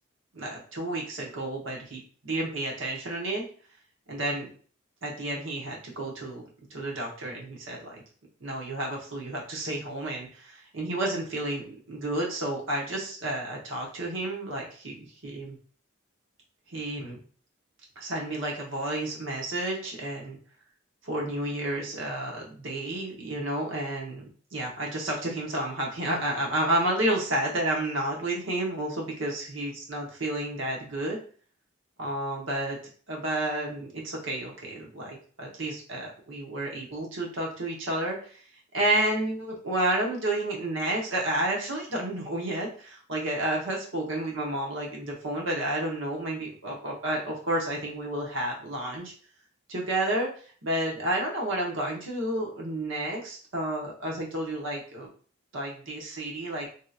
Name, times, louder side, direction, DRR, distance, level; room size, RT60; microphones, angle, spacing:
voice 1, 0.3-3.5 4.1-4.5 5.0-6.4 6.7-8.0 8.4-15.6 16.7-17.2 18.0-20.4 21.0-31.2 32.0-32.8 33.1-38.4 38.7-49.1 49.7-50.3 50.6-55.1 55.5-56.7, right 1 dB, 80° right, -1 dB, 1.0 m, -31 dB
2.8 x 2.8 x 2.4 m, 0.43 s
head